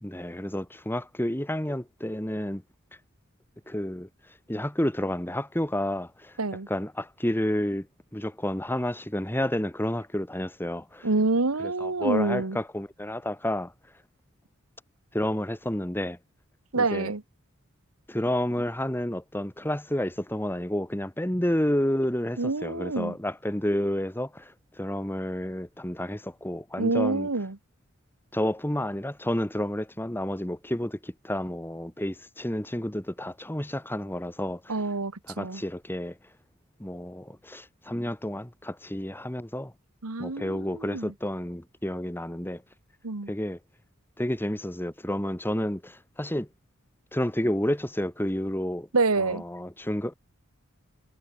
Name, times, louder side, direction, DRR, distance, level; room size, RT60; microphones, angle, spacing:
voice 1, 0.0-2.6 3.7-4.1 4.5-6.4 6.7-7.9 8.1-11.1 11.6-13.7 15.1-16.2 16.7-17.1 18.1-27.3 28.3-34.8 35.3-36.2 36.8-39.7 40.2-42.6 43.3-43.6 44.2-46.5 47.1-48.9 49.2-50.1, left 1 dB, 10° left, 1.9 m, -30 dB
voice 2, 11.0-12.6 16.7-17.2 22.4-23.1 26.8-27.6 34.7-35.6 40.0-41.1 43.0-43.3 48.9-49.4, right 3 dB, 80° right, 1.4 m, -27 dB
head